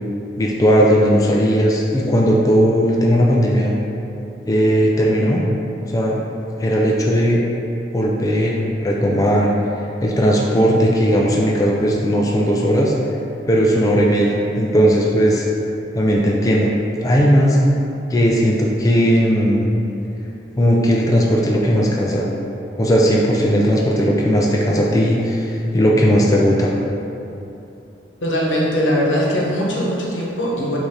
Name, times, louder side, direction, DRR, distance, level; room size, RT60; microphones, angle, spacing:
voice 1, 0.4-3.7 4.5-5.4 5.9-6.2 6.6-7.4 7.9-9.5 10.0-12.9 13.5-15.4 15.9-16.7 17.0-17.6 18.1-19.7 20.6-22.3 22.8-26.7, equal, 20° left, -3 dB, 0.3 m, -17 dB
voice 2, 28.2-30.8, equal, 90° left, -4 dB, 1.0 m, -20 dB
6.0 x 2.7 x 3.2 m, 2.9 s
head